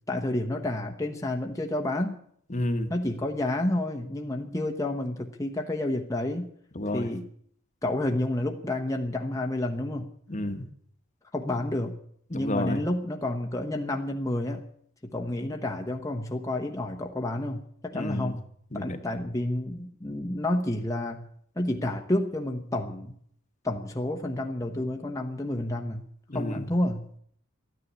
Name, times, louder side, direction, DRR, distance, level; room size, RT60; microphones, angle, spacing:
voice 1, 0.1-2.2 2.9-6.5 6.9-7.3 7.8-10.1 11.3-12.0 12.3-14.6 15.0-18.5 18.7-21.3 21.6-23.1 23.6-26.1 26.3-27.1, left 1 dB, 15° left, 1 dB, 1.1 m, -30 dB
voice 2, 2.5-2.9 6.7-7.1 10.3-10.7 12.3-12.8 17.9-18.3 18.7-19.0 26.3-26.7, left 1 dB, 35° left, 9 dB, 1.3 m, -30 dB
13.5 x 10.0 x 9.3 m, 0.64 s
head